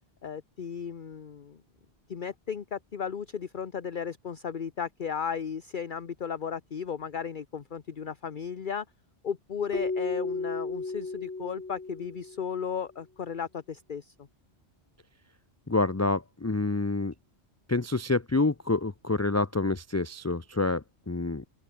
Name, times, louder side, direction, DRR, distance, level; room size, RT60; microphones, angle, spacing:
voice 1, 0.2-1.6 2.1-8.8 9.2-14.3, left 7 dB, 50° left, 1.1 m, -35 dB
Keyboard (musical), 9.7-12.6, left 3 dB, 80° left, 3.1 m, -34 dB
voice 2, 15.7-17.1 17.7-21.4, left 3 dB, 20° left, 0.6 m, -27 dB
open air
omnidirectional pair, 1.1 m